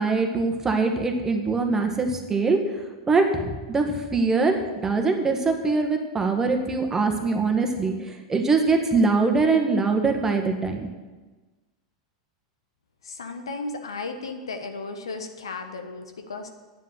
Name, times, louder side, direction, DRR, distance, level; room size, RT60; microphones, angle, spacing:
voice 1, 0.0-2.6 3.1-10.9, right 4 dB, 20° right, 4 dB, 1.6 m, -23 dB
voice 2, 13.0-16.5, left 3 dB, 75° left, 6 dB, 1.1 m, -35 dB
9.4 x 7.5 x 8.1 m, 1.2 s
figure-of-eight pair, 90°, 3 cm